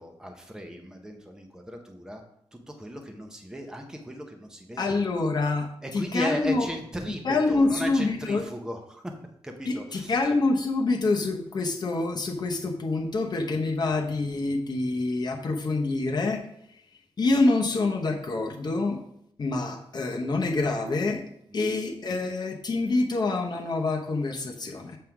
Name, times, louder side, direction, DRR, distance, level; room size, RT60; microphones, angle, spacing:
voice 1, 0.0-2.2 2.5-5.0 5.8-9.0 9.4-10.3 21.5-21.8, equal, 5° right, 3 dB, 0.7 m, -37 dB
voice 2, 4.8-6.7 7.2-8.5 9.7-16.4 17.2-19.0 19.4-21.2 21.5-25.0, left 3 dB, 45° left, 1 dB, 0.8 m, -26 dB
7.5 x 3.6 x 5.7 m, 0.73 s
wide cardioid pair, 165°, 10 cm